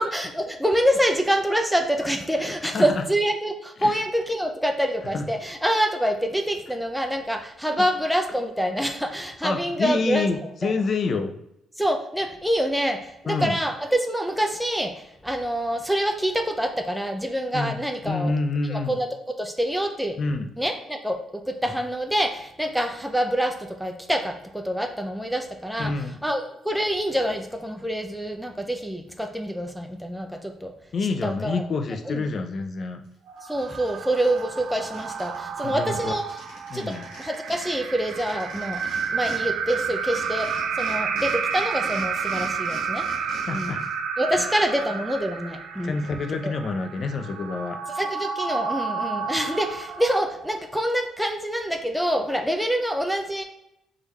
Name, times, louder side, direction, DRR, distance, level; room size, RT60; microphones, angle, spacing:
voice 1, 0.0-10.8 11.8-18.3 18.7-20.2 20.6-25.9 26.2-30.7 31.2-31.6 32.0-32.2 33.4-36.4 36.7-43.7 44.2-46.0 46.4-46.5 48.0-53.4, equal, ahead, 3 dB, 0.5 m, -26 dB
voice 2, 9.4-11.3 13.3-13.6 17.5-17.8 18.0-19.0 20.2-20.5 25.8-26.2 30.9-33.0 35.6-36.1 36.7-37.0 43.3-43.8 44.3-44.5 45.8-47.8, left 4 dB, 50° left, 6 dB, 0.5 m, -27 dB
sound 1, 33.0-33.1 33.5-35.4 35.6-35.7 35.9-39.4 39.7-43.9, left 2 dB, 85° left, 1.5 m, -43 dB
sound 2, 33.3-50.6, right 6 dB, 80° right, 0.4 m, -31 dB
3.7 x 3.3 x 3.1 m, 0.82 s
cardioid pair, 90°, 0 cm